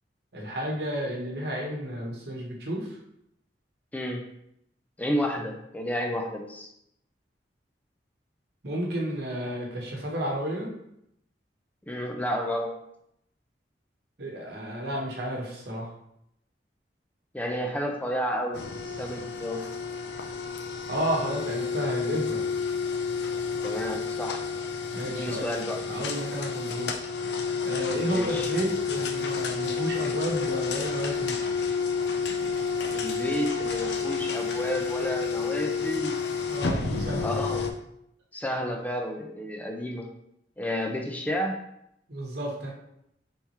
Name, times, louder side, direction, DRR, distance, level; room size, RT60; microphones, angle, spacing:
voice 1, 0.3-3.0 8.6-10.7 14.2-15.9 20.9-22.4 24.9-25.4 25.9-26.9 27.6-31.4 36.5-37.3 42.1-42.7, equal, 65° right, -1 dB, 1.0 m, -32 dB
voice 2, 5.0-6.7 11.9-12.7 17.3-18.6 19.0-19.6 23.6-24.4 25.0-25.8 28.1-28.5 32.9-36.2 37.2-37.7 38.3-40.1 40.6-41.5, equal, 10° left, 1 dB, 0.4 m, -31 dB
sound 1, 18.5-37.7, left 5 dB, 65° left, 0.5 m, -30 dB
4.3 x 3.5 x 2.9 m, 0.77 s
head